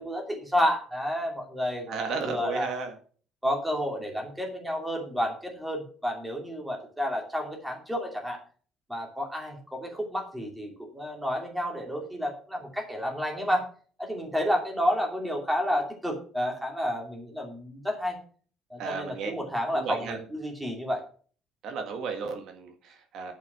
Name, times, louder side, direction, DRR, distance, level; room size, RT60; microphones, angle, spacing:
voice 1, 0.0-2.7 3.4-8.4 8.9-13.6 14.0-18.2 18.7-21.0, equal, 5° right, 1 dB, 2.7 m, -30 dB
voice 2, 1.9-2.9 18.8-19.3 19.7-20.2 21.6-23.3, right 5 dB, 50° right, 5 dB, 1.7 m, -34 dB
10.5 x 6.3 x 6.1 m, 0.42 s
cardioid pair, 170°, 0 cm